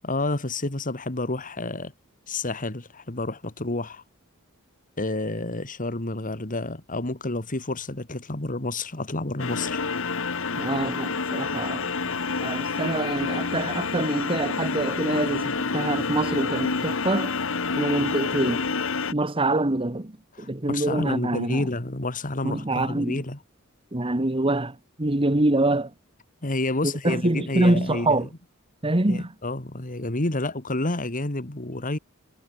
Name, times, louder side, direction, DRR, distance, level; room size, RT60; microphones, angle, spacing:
voice 1, 0.0-1.9 2.3-4.0 5.0-9.8 20.4-23.4 26.4-28.3 29.1-32.0, left 2 dB, 40° left, 2.3 m, -29 dB
sound 1, 9.4-19.1, left 4 dB, 65° left, 1.6 m, -28 dB
voice 2, 10.6-12.1 12.4-17.3 17.7-18.7 19.1-21.7 22.4-23.2 23.9-25.9 26.8-28.3 28.8-29.3, right 2 dB, 25° right, 1.4 m, -25 dB
head